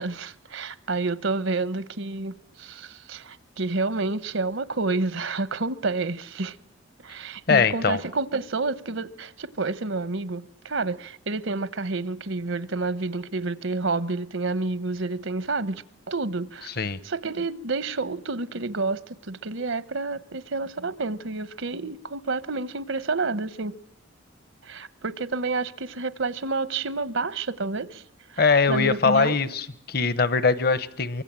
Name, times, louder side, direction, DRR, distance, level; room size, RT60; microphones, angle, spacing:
voice 1, 0.0-6.6 7.0-23.7 24.6-28.0 28.3-29.4, right 3 dB, 75° right, 1.0 m, -29 dB
voice 2, 7.5-8.0 16.8-17.0 28.4-31.2, left 5 dB, 50° left, 1.0 m, -22 dB
24.5 x 23.5 x 8.9 m
head